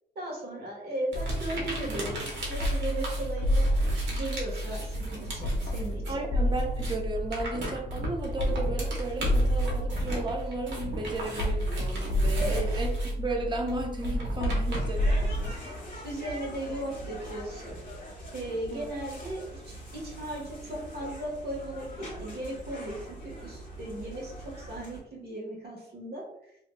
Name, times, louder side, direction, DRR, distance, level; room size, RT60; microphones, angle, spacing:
voice 1, 0.1-6.3 12.3-12.7 16.0-17.8 18.3-26.2, right 1 dB, 65° right, -2 dB, 1.3 m, -37 dB
sound 1, 1.1-15.5, equal, 90° left, 0.5 m, -30 dB
sound 2, 1.1-6.2 6.5-15.6, right 1 dB, 90° right, 1.0 m, -38 dB
voice 2, 6.1-15.8 18.7-18.9, right 2 dB, 25° right, 2 dB, 0.6 m, -34 dB
sound 3, 14.6-25.0, right 1 dB, 50° left, 1.2 m, -43 dB
3.0 x 2.7 x 2.2 m, 0.78 s
cardioid pair, 95°, 18 cm